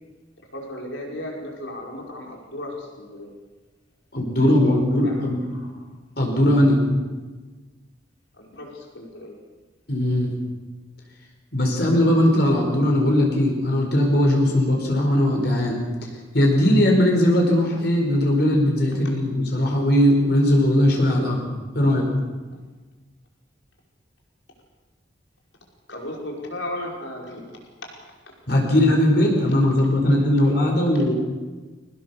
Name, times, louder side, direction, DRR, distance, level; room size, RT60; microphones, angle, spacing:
voice 1, 0.5-3.3 4.6-5.2 5.5-5.8 8.4-9.3 25.9-27.5, left 1 dB, 80° left, -1 dB, 5.5 m, -35 dB
voice 2, 4.1-5.4 6.2-6.8 9.9-10.3 11.5-15.8 16.3-21.4 21.7-22.1 28.5-31.2, left 1 dB, 55° left, 0 dB, 4.5 m, -19 dB
23.0 x 19.0 x 6.9 m, 1.3 s
head